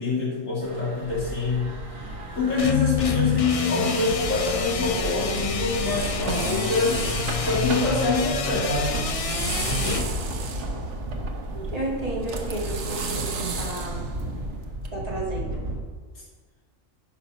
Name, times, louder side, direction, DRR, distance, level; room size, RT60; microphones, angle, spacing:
voice 1, 0.0-1.7 2.3-7.0 7.4-9.0 9.6-10.1, left 3 dB, 75° left, -6 dB, 3.2 m, -25 dB
sound 1, 0.6-15.8, equal, 80° right, 2.1 m, -35 dB
sound 2, 2.6-10.0, left 6 dB, 60° left, 0.3 m, -28 dB
sound 3, 4.6-14.9, right 3 dB, 65° right, 1.2 m, -33 dB
voice 2, 11.5-14.0 14.9-15.6, right 2 dB, 30° right, -4 dB, 2.1 m, -32 dB
9.9 x 5.8 x 5.6 m, 1.5 s
omnidirectional pair, 1.4 m